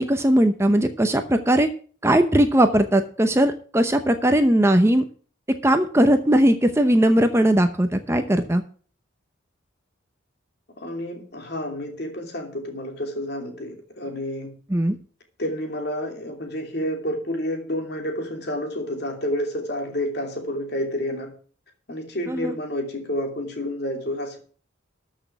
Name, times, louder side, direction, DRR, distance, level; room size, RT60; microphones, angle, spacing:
voice 1, 0.0-1.7 2.0-5.0 5.5-8.6 14.7-15.0 22.3-22.6, right 1 dB, 15° right, 7 dB, 0.7 m, -19 dB
voice 2, 10.8-14.5 15.4-21.3 21.9-24.4, left 1 dB, 50° left, 3 dB, 2.9 m, -29 dB
13.5 x 6.2 x 6.0 m, 0.42 s
head